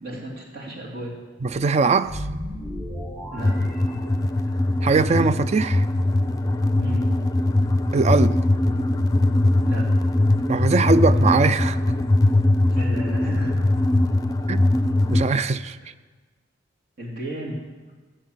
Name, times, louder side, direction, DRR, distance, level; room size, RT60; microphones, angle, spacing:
voice 1, 0.0-1.1 3.3-3.5 6.8-7.0 9.6-9.8 12.7-13.8 17.0-17.6, equal, 55° right, -3 dB, 2.6 m, -33 dB
voice 2, 1.4-2.2 4.8-5.8 7.9-8.4 10.5-11.8 14.5-14.7 15.1-15.8, right 4 dB, 35° right, 14 dB, 0.4 m, -21 dB
sound 1, 2.0-4.6, equal, ahead, 5.4 m, -34 dB
sound 2, 3.4-15.2, left 1 dB, 20° left, 0.6 m, -21 dB
15.5 x 6.2 x 7.8 m, 1.3 s
head